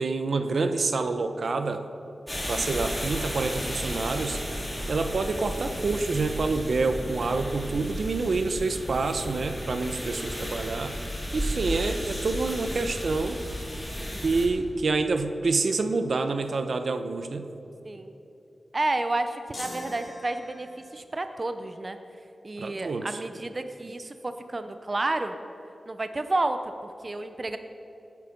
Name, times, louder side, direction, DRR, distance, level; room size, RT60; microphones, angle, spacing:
voice 1, 0.0-1.8 2.5-4.4 4.9-11.0 11.3-13.4 14.2-17.5 22.6-23.1, right 3 dB, 70° right, 8 dB, 0.9 m, -27 dB
sound 1, 2.3-14.5, equal, 10° left, 3.7 m, -34 dB
voice 2, 10.0-10.4 14.0-14.3 17.8-18.1 18.7-22.0 22.4-25.3 25.9-27.6, right 2 dB, 35° right, 8 dB, 0.7 m, -31 dB
sound 2, 19.5-21.0, left 1 dB, 45° left, 3.2 m, -42 dB
18.5 x 9.7 x 5.3 m, 3.0 s
wide cardioid pair, 85°, 0 cm